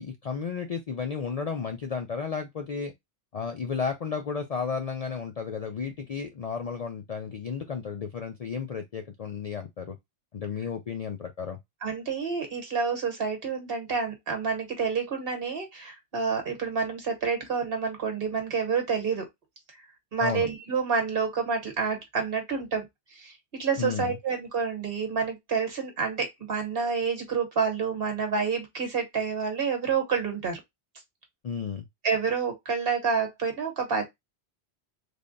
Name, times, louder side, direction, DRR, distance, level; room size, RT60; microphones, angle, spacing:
voice 1, 0.0-2.9 3.3-10.0 10.3-11.6 20.2-20.5 23.8-24.2 31.4-31.9, left 6 dB, 50° left, 0.4 m, -33 dB
voice 2, 11.8-19.2 20.1-22.8 23.1-30.6 32.0-34.0, right 5 dB, 60° right, 1.3 m, -28 dB
3.4 x 2.2 x 3.8 m
omnidirectional pair, 1.1 m